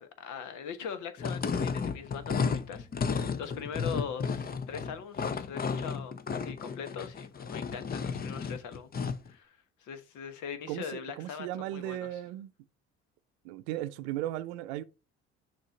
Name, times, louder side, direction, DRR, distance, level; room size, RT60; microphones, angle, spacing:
voice 1, 0.0-8.9 9.3-12.2, left 7 dB, 60° left, 1.2 m, -41 dB
sound 1, 1.2-9.3, left 5 dB, 30° left, 0.7 m, -33 dB
voice 2, 10.7-12.5 13.4-14.8, right 14 dB, 80° right, 0.7 m, -36 dB
6.5 x 3.1 x 5.8 m
hypercardioid pair, 60°, 33 cm